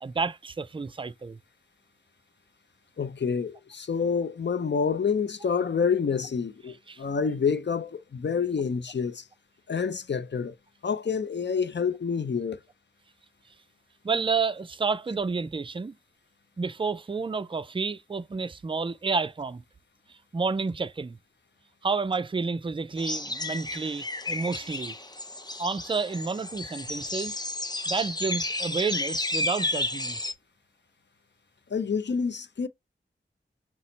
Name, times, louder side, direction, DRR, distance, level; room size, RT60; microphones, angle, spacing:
voice 1, 0.0-1.4 6.9-7.0 14.0-15.9 16.6-19.6 20.3-21.2 21.8-24.9 25.6-27.4 27.9-30.2, right 4 dB, 25° right, 0.3 m, -30 dB
voice 2, 3.0-9.2 9.7-10.6 10.8-12.6 31.7-32.7, left 6 dB, 60° left, 0.5 m, -28 dB
sound 1, 23.0-30.3, left 2 dB, 20° left, 0.6 m, -32 dB
5.8 x 2.0 x 3.9 m
wide cardioid pair, 50°, 20 cm